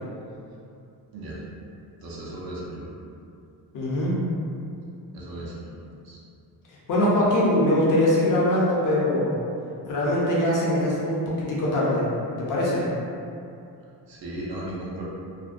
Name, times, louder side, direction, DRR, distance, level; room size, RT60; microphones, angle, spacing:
voice 1, 2.0-2.9 5.1-5.5 6.0-6.2 14.1-15.0, right 1 dB, 60° right, -6 dB, 0.6 m, -35 dB
voice 2, 3.7-4.1 6.9-9.3 9.9-12.1 12.5-12.8, left 1 dB, 50° left, -6 dB, 0.6 m, -22 dB
2.5 x 2.1 x 2.4 m, 2.6 s
cardioid pair, 155°, 42 cm